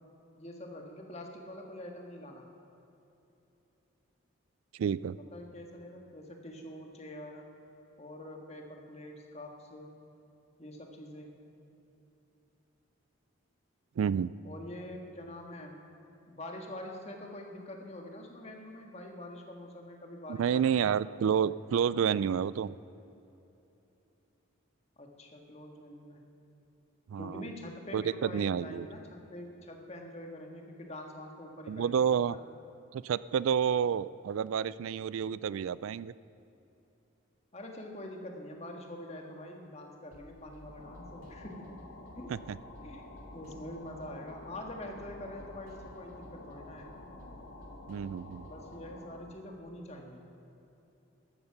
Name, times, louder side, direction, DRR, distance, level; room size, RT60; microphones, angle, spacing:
voice 1, 0.3-2.5 5.2-7.5 8.0-10.0 10.6-11.3 14.4-15.8 16.3-20.8 25.0-26.2 27.2-32.0 32.3-32.4 37.5-41.7 42.1-42.3 42.8-43.0 43.3-46.9 48.5-50.2, left 1 dB, 30° left, 2 dB, 1.6 m, -45 dB
voice 2, 4.8-5.2 14.0-14.3 20.3-22.7 27.1-27.5 27.9-28.9 31.7-32.3 32.9-36.1 42.5-42.6 47.9-48.5, right 7 dB, 80° right, 18 dB, 0.3 m, -29 dB
sound 1, 40.1-49.0, equal, 40° right, 2.3 m, -55 dB
sound 2, 40.5-49.4, left 2 dB, 70° left, 1.5 m, -50 dB
14.5 x 12.5 x 5.9 m, 3.0 s
head